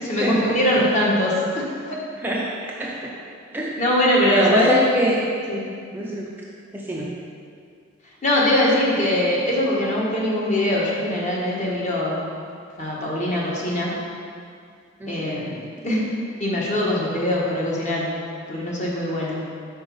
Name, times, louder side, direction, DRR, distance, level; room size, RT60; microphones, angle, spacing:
voice 1, 0.0-2.0 3.8-4.8 5.5-5.6 8.2-12.3 12.8-13.9 15.1-15.6 15.8-16.1 16.4-19.4, left 1 dB, 35° left, -5 dB, 1.3 m, -22 dB
voice 2, 2.2-3.1 3.5-3.7 4.2-5.2 5.9-6.3 6.7-7.1 15.0-15.5, equal, 10° right, -4 dB, 0.5 m, -24 dB
5.3 x 5.0 x 5.4 m, 2.3 s
head